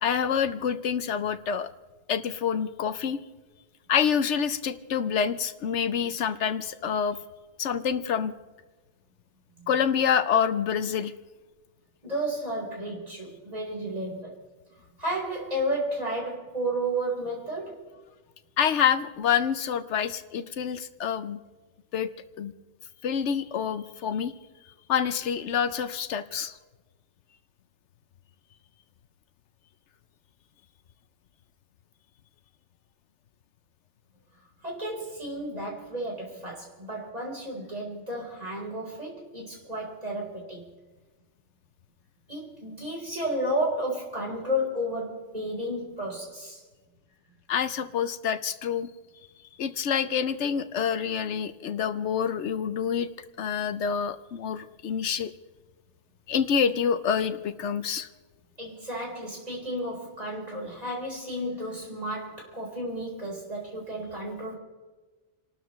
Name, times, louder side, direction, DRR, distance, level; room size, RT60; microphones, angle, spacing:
voice 1, 0.0-1.7 2.1-3.2 3.9-7.2 7.6-8.3 9.7-11.1 18.6-21.4 21.9-22.1 22.4-22.5 23.0-24.3 24.9-26.5 47.5-48.9 49.6-53.1 53.4-55.3 56.3-58.1, left 7 dB, 75° left, 11 dB, 1.0 m, -27 dB
voice 2, 12.0-14.4 15.0-17.8 34.6-40.6 42.3-46.6 58.6-64.6, right 1 dB, 35° right, -3 dB, 4.4 m, -32 dB
29.5 x 13.0 x 3.1 m, 1.3 s
omnidirectional pair, 1.2 m